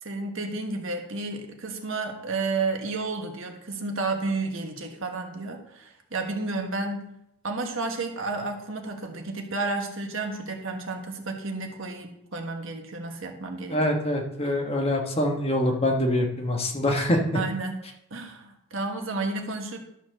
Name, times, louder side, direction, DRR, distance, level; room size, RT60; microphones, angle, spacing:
voice 1, 0.0-7.1 7.4-13.8 17.3-17.8 18.1-19.8, right 3 dB, 60° right, 3 dB, 1.4 m, -31 dB
voice 2, 13.7-17.2, left 1 dB, 25° left, 1 dB, 1.3 m, -24 dB
12.0 x 4.2 x 6.4 m, 0.78 s
head